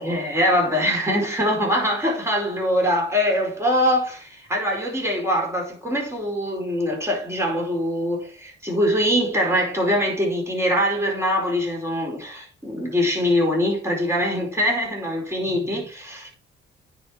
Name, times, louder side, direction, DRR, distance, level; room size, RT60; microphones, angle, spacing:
voice 1, 0.0-16.3, equal, 15° right, 5.0 m, -23 dB
9.5 x 5.6 x 4.8 m
cardioid pair, 90°, 20 cm